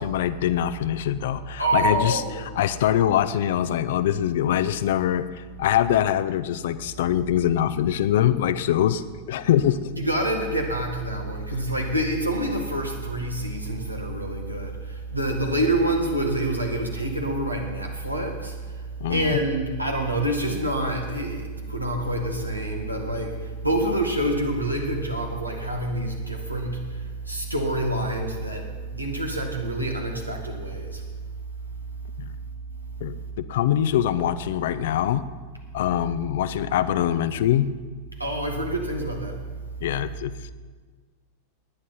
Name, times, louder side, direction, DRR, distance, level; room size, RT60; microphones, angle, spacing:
voice 1, 0.0-2.2 2.6-9.9 19.0-19.4 32.2-32.3 33.0-35.2 35.7-37.7 39.8-40.5, left 11 dB, 55° left, 14 dB, 0.6 m, -23 dB
voice 2, 1.6-2.5 10.0-31.1 31.7-31.8 32.2-32.3 32.7-33.3 38.1-39.7, right 1 dB, 85° right, 2 dB, 2.0 m, -27 dB
20.0 x 9.8 x 4.3 m, 1.5 s
figure-of-eight pair, 90°, 0 cm